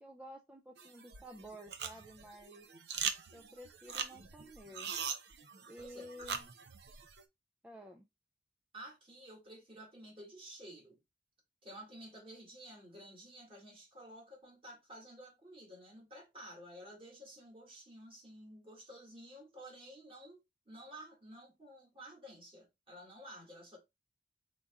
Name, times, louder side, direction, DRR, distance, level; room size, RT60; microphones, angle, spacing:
voice 1, 0.0-2.7 3.3-4.9 5.7-6.5 7.6-8.0, equal, 5° right, 0.3 m, -52 dB
sound 1, 0.8-7.2, right 7 dB, 65° right, 0.6 m, -42 dB
voice 2, 5.8-6.1 8.7-11.0 11.6-20.4 20.7-23.8, right 1 dB, 30° right, 2.0 m, -52 dB
5.0 x 4.1 x 2.3 m
head